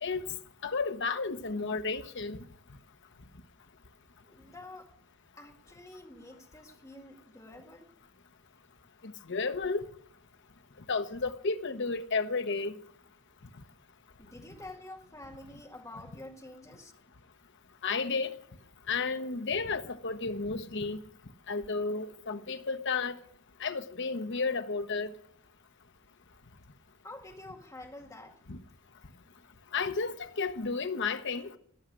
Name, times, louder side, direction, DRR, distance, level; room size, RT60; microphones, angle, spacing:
voice 1, 0.6-2.4 9.0-9.8 10.9-12.7 17.8-18.3 18.9-21.0 21.5-23.2 23.6-25.1 28.5-28.6 29.7-31.5, left 4 dB, 55° left, 1.0 m, -32 dB
voice 2, 4.2-5.0 5.3-7.9 14.2-16.9 27.0-28.4, left 2 dB, 15° left, 1.9 m, -48 dB
17.5 x 6.4 x 9.8 m
head